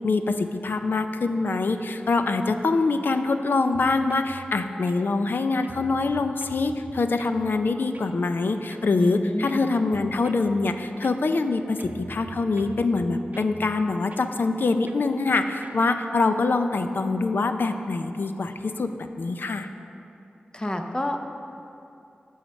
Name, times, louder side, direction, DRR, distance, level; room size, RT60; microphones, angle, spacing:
voice 1, 0.0-19.7, left 3 dB, 70° left, 8 dB, 0.5 m, -24 dB
sound 1, 3.7-4.3 4.9-5.4 5.6-7.4 7.9-8.2 8.7-9.0 9.5-10.5 11.0-11.5 11.8-13.6 14.1-14.3 14.9-15.1 15.6-15.9, right 3 dB, 45° right, 0.4 m, -44 dB
voice 2, 9.0-9.7 20.5-21.2, left 1 dB, 25° left, 5 dB, 0.7 m, -29 dB
8.9 x 5.6 x 6.3 m, 2.7 s
wide cardioid pair, 95°, 4 cm